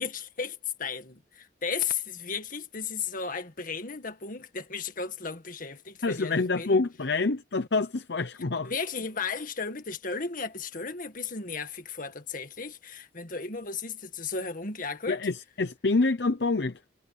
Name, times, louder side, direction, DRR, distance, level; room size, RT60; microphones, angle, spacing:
voice 1, 0.0-6.8 8.6-15.2, left 5 dB, 50° left, 2.0 m, -35 dB
voice 2, 6.0-8.7 15.1-16.8, left 3 dB, 70° left, 0.8 m, -27 dB
head